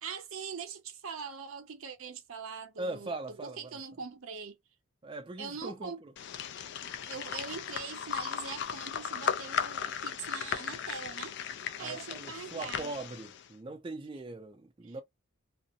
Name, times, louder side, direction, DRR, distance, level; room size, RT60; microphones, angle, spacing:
voice 1, 0.0-4.6 5.4-6.0 7.0-11.4 11.8-12.9 14.8-15.0, right 5 dB, 70° right, 0.6 m, -42 dB
voice 2, 2.8-3.6 5.0-6.1 11.8-15.0, right 2 dB, 25° right, 0.4 m, -40 dB
sound 1, 6.2-13.5, left 8 dB, 55° left, 0.3 m, -36 dB
2.6 x 2.0 x 2.5 m
head